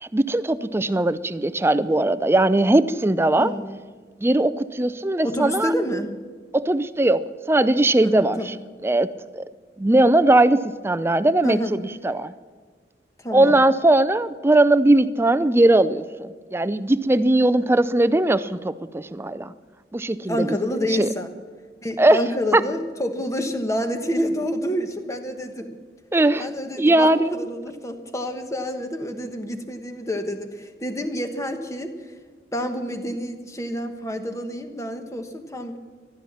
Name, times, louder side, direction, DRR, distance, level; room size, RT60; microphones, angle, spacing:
voice 1, 0.0-3.5 4.2-5.7 6.5-7.2 7.5-8.5 8.8-9.1 9.3-9.4 9.8-12.3 13.3-19.5 19.9-20.5 21.0-21.1 22.0-22.2 22.5-22.6 26.1-26.5 26.8-27.3, right 2 dB, 15° right, 14 dB, 0.4 m, -19 dB
voice 2, 3.3-3.7 5.2-6.1 8.0-8.5 11.4-11.7 13.2-13.6 20.3-21.3 21.8-25.7 26.3-31.9 32.5-35.8, equal, 20° left, 7 dB, 1.2 m, -28 dB
14.5 x 12.0 x 7.3 m, 1.5 s
head